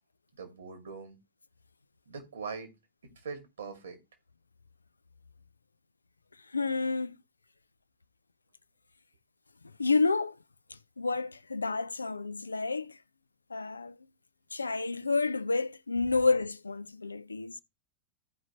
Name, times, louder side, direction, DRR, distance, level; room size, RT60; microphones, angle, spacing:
voice 1, 0.3-1.2 2.1-2.7 3.0-4.0 16.0-16.2, right 5 dB, 65° right, 2.3 m, -42 dB
voice 2, 6.5-7.2 9.8-10.4 11.0-13.0 13.5-14.0 14.5-17.6, left 3 dB, 80° left, 0.4 m, -29 dB
15.0 x 5.0 x 3.0 m
figure-of-eight pair, 90°, 0 cm